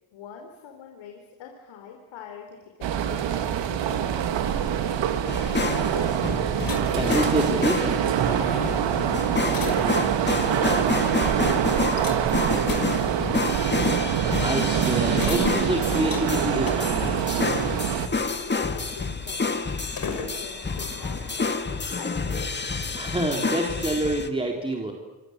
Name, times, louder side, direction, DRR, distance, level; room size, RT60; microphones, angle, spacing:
voice 1, 0.1-4.2 4.5-6.3 8.4-13.8 17.6-19.7 20.1-22.5, left 7 dB, 80° left, 2 dB, 4.3 m, -44 dB
sound 1, 2.8-18.1, right 9 dB, 70° right, 2.3 m, -25 dB
sound 2, 5.3-24.3, left 4 dB, 25° left, 2.1 m, -29 dB
sound 3, 5.4-23.9, left 5 dB, 45° left, 6.1 m, -41 dB
voice 2, 6.9-7.9 14.4-17.4 22.9-24.9, right 1 dB, 10° right, 1 dB, 3.8 m, -27 dB
27.0 x 25.0 x 8.2 m, 1.3 s
cardioid pair, 85°, 46 cm